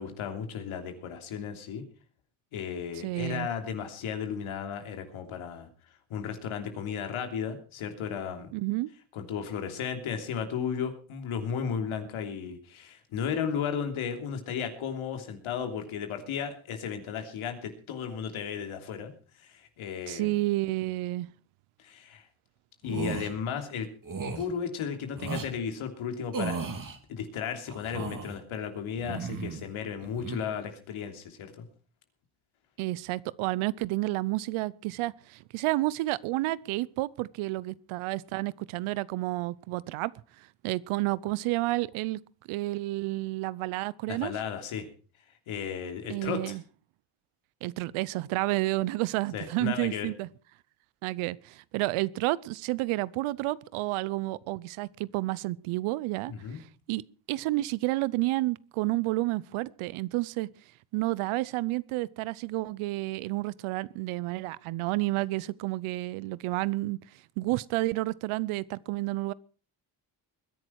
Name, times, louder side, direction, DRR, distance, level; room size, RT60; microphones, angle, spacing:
voice 1, 0.0-1.8 2.5-5.7 6.1-8.5 9.1-19.1 19.4-20.3 21.8-22.2 22.8-23.9 24.3-26.6 27.1-31.7 44.1-44.9 45.5-46.6 49.3-50.1 56.3-56.6, left 7 dB, 80° left, 3.2 m, -34 dB
voice 2, 2.9-3.5 8.5-8.9 20.1-21.3 32.8-40.1 40.4-42.2 42.5-44.3 46.1-46.6 47.6-50.3 51.0-57.0 57.3-60.5 60.9-67.0 67.4-69.3, right 19 dB, 90° right, 0.7 m, -30 dB
sound 1, 22.8-23.3 24.1-24.4 25.2-25.5 26.3-27.0 27.7-28.4 29.0-29.7 30.0-30.4, right 4 dB, 40° right, 3.1 m, -35 dB
21.0 x 10.5 x 4.7 m
supercardioid pair, 65°, 48 cm